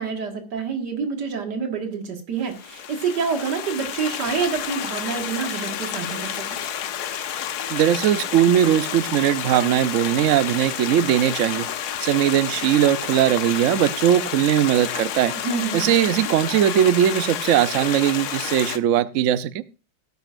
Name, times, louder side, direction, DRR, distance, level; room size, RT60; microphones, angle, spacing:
voice 1, 0.0-6.6 15.4-15.9, right 5 dB, 60° right, 2.4 m, -27 dB
Stream, 2.5-18.8, left 9 dB, 65° left, 1.2 m, -30 dB
voice 2, 7.7-11.7 12.0-15.3 15.7-19.6, right 11 dB, 75° right, 0.7 m, -19 dB
17.5 x 9.1 x 2.5 m
omnidirectional pair, 2.1 m